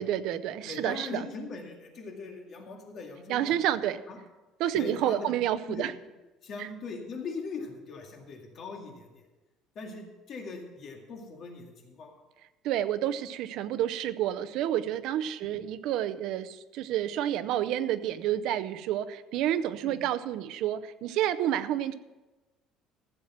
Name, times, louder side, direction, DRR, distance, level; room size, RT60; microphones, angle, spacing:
voice 1, 0.0-1.3 3.3-4.0 4.6-5.9 6.6-6.7 12.6-21.9, right 11 dB, 60° right, 12 dB, 0.6 m, -29 dB
voice 2, 0.7-3.5 4.1-4.2 4.7-5.3 5.7-5.8 6.4-9.2 9.8-12.1 15.4-15.6 19.8-20.0, left 4 dB, 40° left, 1 dB, 2.2 m, -40 dB
15.0 x 7.4 x 6.1 m, 1.1 s
cardioid pair, 170°, 0 cm